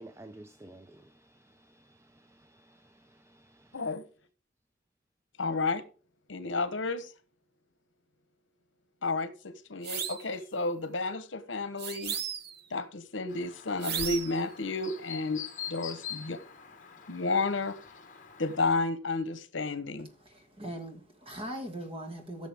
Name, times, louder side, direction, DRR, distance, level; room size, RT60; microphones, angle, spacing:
voice 1, 0.0-3.9, right 1 dB, 15° right, 0.5 m, -53 dB
voice 2, 3.7-4.0 5.4-5.8 6.3-7.1 9.0-12.2 12.7-16.4 17.1-17.8 18.4-20.1, left 3 dB, 75° left, 1.1 m, -31 dB
sound 1, 9.8-10.3 11.8-12.6 13.8-14.4, right 8 dB, 55° right, 0.8 m, -35 dB
Chirp tweet, 13.3-18.8, left 8 dB, 45° left, 1.6 m, -45 dB
voice 3, 20.3-22.5, right 1 dB, 30° right, 2.2 m, -40 dB
16.0 x 6.6 x 3.6 m
head